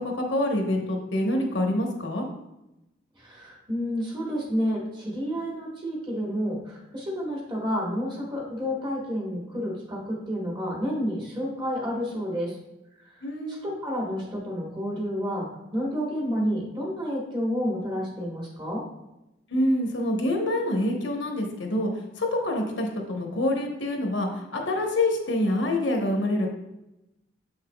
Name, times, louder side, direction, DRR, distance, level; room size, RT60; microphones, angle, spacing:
voice 1, 0.0-2.3 13.2-13.7 19.5-21.9 22.2-26.5, left 1 dB, 75° left, 2 dB, 1.0 m, -26 dB
voice 2, 3.2-12.5 13.0-13.2 13.5-15.4 15.7-18.8, equal, 25° right, -3 dB, 1.3 m, -30 dB
7.1 x 5.7 x 2.3 m, 0.93 s
head